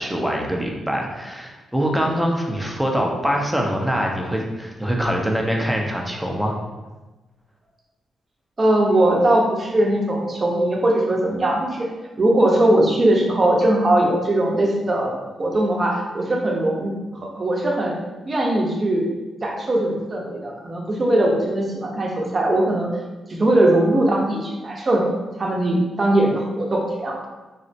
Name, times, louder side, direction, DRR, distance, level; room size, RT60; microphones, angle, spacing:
voice 1, 0.0-6.6, equal, 5° right, 0 dB, 0.7 m, -24 dB
voice 2, 8.6-11.9 12.2-15.1 15.4-17.9 18.3-19.1 19.4-22.9 23.4-25.0 25.4-27.2, right 1 dB, 40° right, -1 dB, 0.8 m, -20 dB
4.1 x 2.1 x 2.7 m, 1.2 s
supercardioid pair, 50°, 0 cm